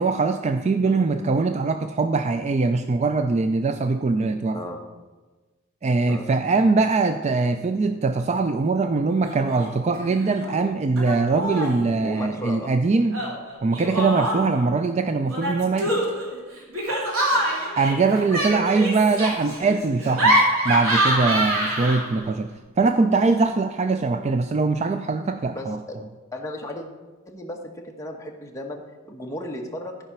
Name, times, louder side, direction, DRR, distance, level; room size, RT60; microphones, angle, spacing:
voice 1, 0.0-4.6 5.8-13.2 13.6-16.0 17.8-22.5 22.8-25.8, right 3 dB, 35° right, 8 dB, 0.4 m, -22 dB
Laughter, 9.2-9.7 10.0-10.6 11.0-11.8 13.1-14.6 15.3-22.3, right 1 dB, 85° right, 2.5 m, -25 dB
voice 2, 12.0-12.7 17.3-17.5 21.8-22.1 25.5-26.0 26.3-26.9 27.2-30.0, left 1 dB, 15° left, 1 dB, 1.2 m, -35 dB
14.0 x 5.0 x 5.7 m, 1.2 s
head